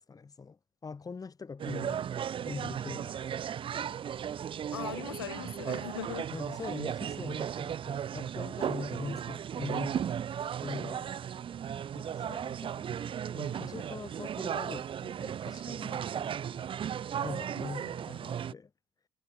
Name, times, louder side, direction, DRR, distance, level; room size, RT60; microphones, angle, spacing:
voice 1, 0.0-2.0 2.4-3.4 6.3-10.1 10.6-11.1 11.9-16.7 17.2-18.7, left 5 dB, 30° left, 4.7 m, -43 dB
sound 1, 1.6-18.5, right 9 dB, 45° right, 1.7 m, -36 dB
voice 2, 4.7-6.3 6.6-6.7 17.5-17.9, left 11 dB, 80° left, 6.0 m, -41 dB
figure-of-eight pair, 50°, 13 cm